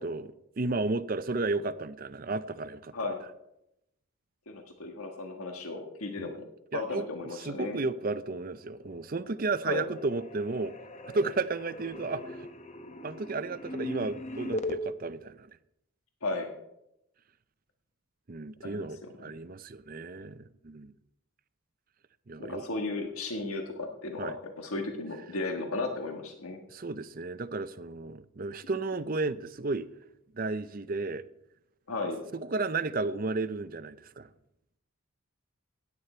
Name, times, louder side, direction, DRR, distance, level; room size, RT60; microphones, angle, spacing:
voice 1, 0.0-2.9 6.2-6.3 6.7-7.1 7.3-10.7 11.1-12.5 13.0-15.6 18.3-20.9 22.3-22.6 24.2-24.4 26.7-29.9 30.3-31.2 32.3-34.3, right 3 dB, 40° right, 0.5 m, -33 dB
voice 2, 4.5-6.4 6.7-7.8 9.7-9.9 16.2-16.5 18.6-18.9 19.2-19.4 22.5-26.6 31.9-32.2, left 3 dB, 85° left, 1.5 m, -35 dB
sound 1, 8.8-9.4 9.6-14.8, left 1 dB, 30° left, 0.9 m, -39 dB
16.5 x 9.7 x 4.4 m
head